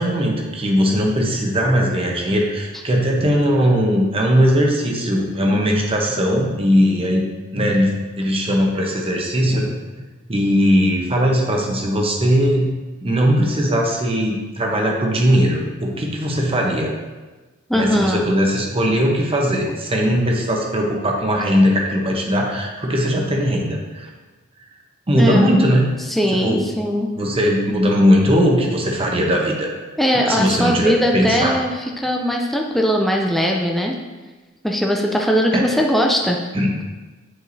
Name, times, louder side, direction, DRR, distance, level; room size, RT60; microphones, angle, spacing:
voice 1, 0.0-7.3 7.5-9.7 10.3-12.7 13.0-16.9 17.7-24.1 25.1-25.9 26.3-26.6 27.2-29.7 30.1-31.5 35.5-35.6 36.5-36.7, equal, 25° right, 0 dB, 0.9 m, -19 dB
voice 2, 17.7-18.3 25.2-25.7 26.1-27.1 30.0-31.7 32.0-34.0 34.6-36.4, equal, ahead, 0 dB, 0.4 m, -20 dB
7.9 x 4.7 x 2.7 m, 1.2 s
head